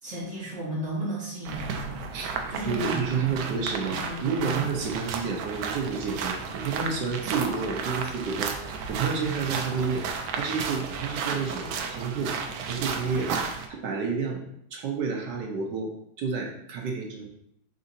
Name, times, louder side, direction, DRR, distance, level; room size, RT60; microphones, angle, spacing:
voice 1, 0.0-2.0 2.5-3.0 3.9-4.7, right 1 dB, 35° right, -7 dB, 2.1 m, -34 dB
sound 1, 1.5-13.7, right 5 dB, 85° right, 1.4 m, -33 dB
voice 2, 2.6-10.0 10.3-12.3 12.7-13.4 13.7-14.4 14.7-15.9 16.2-17.3, right 5 dB, 65° right, 0 dB, 1.4 m, -30 dB
4.9 x 4.0 x 2.7 m, 0.74 s
omnidirectional pair, 2.2 m